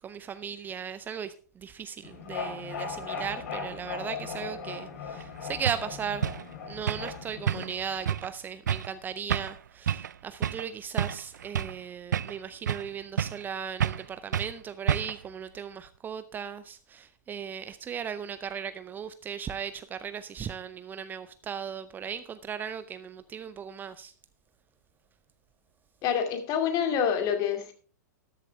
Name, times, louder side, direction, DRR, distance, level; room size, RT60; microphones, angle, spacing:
voice 1, 0.0-6.3 6.6-24.1, right 7 dB, 20° right, 0.5 m, -37 dB
sound 1, 2.0-8.1, left 5 dB, 55° left, 4.3 m, -38 dB
sound 2, 5.2-5.3 5.6-5.8 6.2-6.4 6.9-7.1 7.5-7.8 8.0-8.3 8.7-8.9 9.3-9.6 9.9-10.1 10.4-10.7 11.0-11.8 12.1-12.9 13.2-13.5 13.8-14.1 14.3-14.5 14.9-15.3, right 9 dB, 70° right, 0.4 m, -29 dB
voice 2, 26.0-27.7, left 8 dB, 35° left, 2.3 m, -27 dB
13.5 x 11.0 x 3.3 m
figure-of-eight pair, 105°, 10 cm